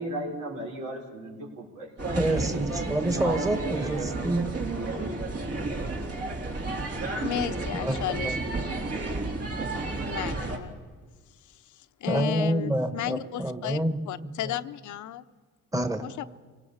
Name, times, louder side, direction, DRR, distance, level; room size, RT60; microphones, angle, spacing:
voice 1, 0.0-2.2 3.0-4.4, right 1 dB, 80° right, -1 dB, 5.4 m, -36 dB
sound 1, 2.0-10.6, right 2 dB, 50° right, 3.7 m, -31 dB
voice 2, 2.2-4.5 7.8-8.0 8.2-8.4 12.1-14.5 15.7-16.0, right 1 dB, 10° right, 7 dB, 1.7 m, -28 dB
voice 3, 7.2-8.4 8.7-8.8 10.0-10.8 12.0-15.2 16.0-16.2, left 12 dB, 75° left, 12 dB, 0.8 m, -33 dB
25.5 x 18.0 x 7.2 m, 1.4 s
cardioid pair, 90°, 30 cm